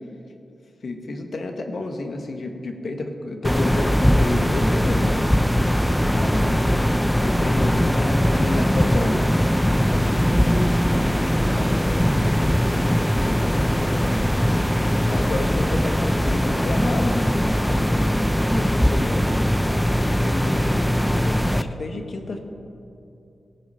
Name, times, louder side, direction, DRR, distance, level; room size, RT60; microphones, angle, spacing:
voice 1, 0.8-5.4 6.1-9.2 15.0-17.2 17.6-18.3 18.5-19.3 20.2-22.4, left 2 dB, 60° left, 4 dB, 1.3 m, -31 dB
sound 1, 3.4-21.6, equal, 5° left, 0.4 m, -20 dB
voice 2, 10.1-14.2, right 1 dB, 85° right, -3 dB, 3.3 m, -37 dB
17.5 x 6.1 x 5.6 m, 2.6 s
wide cardioid pair, 85°, 0 cm